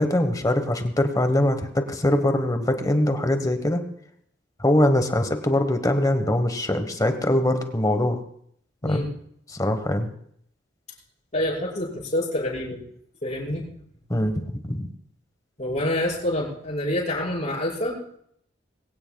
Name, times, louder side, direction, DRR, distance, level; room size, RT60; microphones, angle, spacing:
voice 1, 0.0-3.8 4.6-8.2 8.8-9.0 9.5-10.1 14.1-14.3 14.6-14.9, left 1 dB, 20° left, 7 dB, 1.2 m, -22 dB
voice 2, 11.3-12.8 13.2-13.7 15.6-18.0, left 1 dB, 40° left, -5 dB, 5.7 m, -27 dB
21.5 x 17.0 x 2.3 m, 0.67 s
head